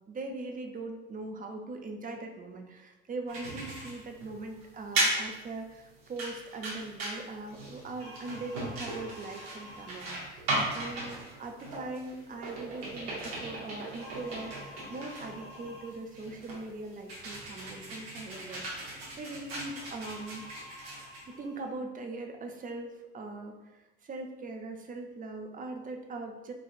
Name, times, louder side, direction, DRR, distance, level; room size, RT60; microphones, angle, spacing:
voice 1, 0.1-20.4 21.3-26.5, right 3 dB, 25° right, 3 dB, 0.6 m, -41 dB
sound 1, 3.3-21.7, right 1 dB, 85° right, 0.9 m, -37 dB
4.7 x 2.4 x 2.4 m, 1.1 s
hypercardioid pair, 60°, 30 cm